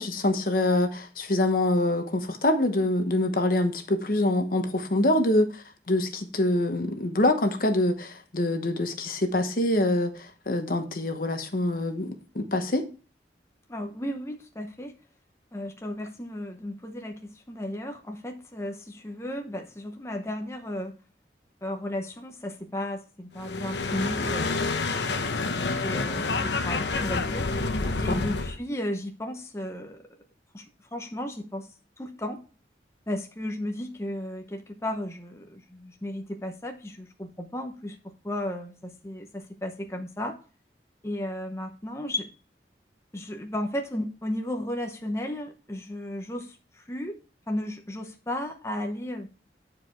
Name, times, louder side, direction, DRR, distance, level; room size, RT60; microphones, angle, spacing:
voice 1, 0.0-12.8 27.8-28.2, left 1 dB, 50° left, 7 dB, 1.1 m, -25 dB
voice 2, 13.7-14.9 15.5-20.9 21.6-24.6 25.4-27.5 28.0-30.1 30.5-32.4 33.1-40.4 41.0-42.3 43.1-47.2 47.5-49.3, left 1 dB, 15° left, 4 dB, 0.8 m, -34 dB
sound 1, 23.4-28.6, left 3 dB, 85° left, 0.9 m, -28 dB
9.6 x 4.8 x 4.6 m, 0.36 s
head